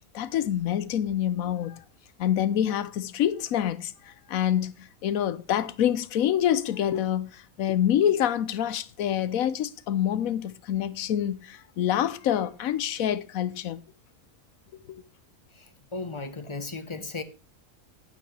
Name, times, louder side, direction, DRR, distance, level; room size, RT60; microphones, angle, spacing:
voice 1, 0.1-1.8 2.2-13.8 14.9-15.0, left 10 dB, 80° left, 1.1 m, -26 dB
voice 2, 15.5-17.2, left 3 dB, 25° left, 0.9 m, -36 dB
11.0 x 9.3 x 3.2 m
omnidirectional pair, 1.4 m